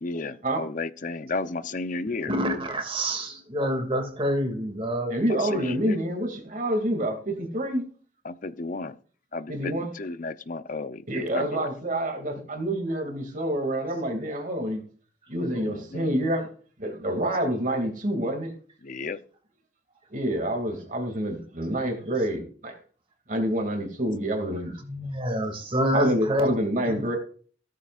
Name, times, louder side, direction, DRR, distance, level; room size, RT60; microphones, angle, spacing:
voice 1, 0.0-2.3 5.3-6.0 8.2-9.0 9.3-11.7 15.5-16.1 18.8-19.2, left 3 dB, 45° left, 0.8 m, -33 dB
voice 2, 2.3-5.2 24.8-26.5 26.8-27.2, equal, 30° right, 2.5 m, -27 dB
voice 3, 5.1-7.8 9.5-9.9 11.1-14.8 15.3-16.5 16.8-18.5 20.1-22.7 23.3-24.7 25.9-27.2, right 1 dB, 45° right, 2.6 m, -27 dB
16.0 x 13.5 x 2.6 m
head